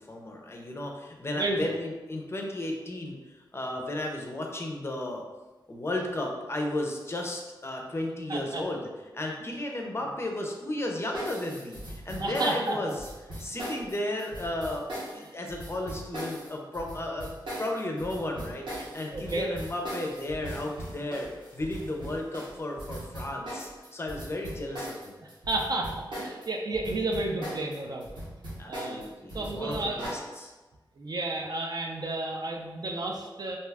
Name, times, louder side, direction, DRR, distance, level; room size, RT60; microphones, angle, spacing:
voice 1, 0.1-3.2 3.5-5.2 5.7-8.8 9.1-12.9 13.4-14.9 15.1-17.3 17.6-25.2 28.6-30.5, left 1 dB, 30° left, 1 dB, 0.5 m, -34 dB
voice 2, 1.3-1.7 8.3-8.6 12.2-12.9 15.1-15.4 19.1-19.5 25.5-28.1 28.7-29.0 29.3-30.1 31.0-33.6, right 2 dB, 55° right, 1 dB, 0.4 m, -32 dB
sound 1, 11.1-26.5 26.7-30.2, right 1 dB, 75° right, 1.0 m, -39 dB
2.6 x 2.3 x 3.3 m, 1.2 s
wide cardioid pair, 95°, 8 cm